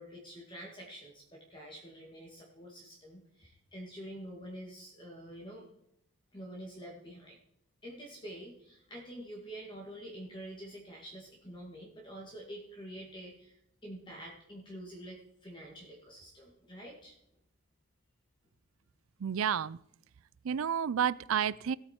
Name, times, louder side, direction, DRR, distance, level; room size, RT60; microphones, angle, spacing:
voice 1, 0.0-5.7 6.3-7.4 7.8-17.2, right 1 dB, 20° left, -1 dB, 1.9 m, -47 dB
voice 2, 19.2-19.8 20.4-21.8, right 8 dB, 70° right, 21 dB, 0.4 m, -30 dB
17.0 x 8.6 x 4.4 m, 0.76 s
head